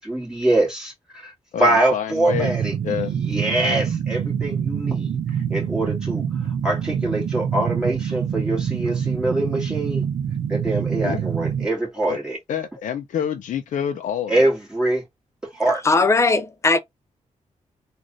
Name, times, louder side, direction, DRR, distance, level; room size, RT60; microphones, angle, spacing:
voice 1, 0.0-1.3 1.6-5.2 5.5-10.0 10.5-12.4 14.3-15.0 15.5-15.8, right 1 dB, 5° right, 2.1 m, -24 dB
voice 2, 1.5-2.5 2.8-3.1 11.0-11.3 12.1-12.2 12.5-14.5, left 9 dB, 80° left, 0.5 m, -27 dB
sound 1, 2.3-11.7, right 8 dB, 80° right, 0.6 m, -25 dB
voice 3, 15.8-16.8, left 3 dB, 20° left, 0.5 m, -18 dB
3.8 x 2.5 x 3.1 m
wide cardioid pair, 150°, 13 cm